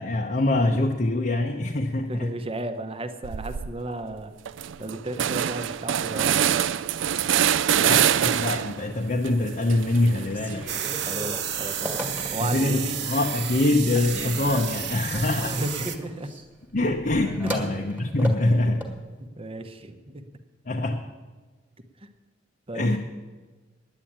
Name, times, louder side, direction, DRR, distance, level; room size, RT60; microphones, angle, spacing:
voice 1, 0.0-2.4 7.8-10.7 12.4-15.6 16.7-18.9 20.7-21.1 22.7-23.0, left 2 dB, 45° left, 1 dB, 0.8 m, -24 dB
voice 2, 2.0-4.3 4.8-6.5 11.1-13.0 15.5-16.4 17.6-17.7 18.7-20.3 22.0-22.1 22.7-23.0, right 1 dB, 30° right, 8 dB, 0.9 m, -34 dB
sound 1, 3.2-3.7 4.1-4.2 4.5-8.9 9.2-11.4, right 9 dB, 85° right, 0.4 m, -25 dB
Telephone, 10.2-12.7 13.2-13.7 13.9-19.0, equal, 10° right, 1.6 m, -37 dB
sound 2, 10.7-16.0, right 9 dB, 65° right, 0.9 m, -32 dB
9.9 x 9.2 x 8.7 m, 1.3 s
head